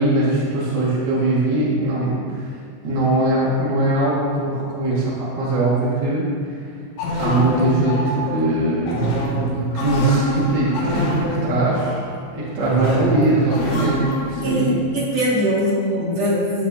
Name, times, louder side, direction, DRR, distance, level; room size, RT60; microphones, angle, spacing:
voice 1, 0.0-2.5 2.8-6.5 7.2-9.1 9.7-12.0 12.3-14.8, right 2 dB, 65° right, -6 dB, 1.0 m, -21 dB
sound 1, 7.0-14.5, equal, 85° left, 4.2 m, -25 dB
voice 2, 14.4-16.7, equal, 45° right, -6 dB, 2.6 m, -21 dB
12.0 x 10.0 x 2.7 m, 2.1 s
omnidirectional pair, 5.2 m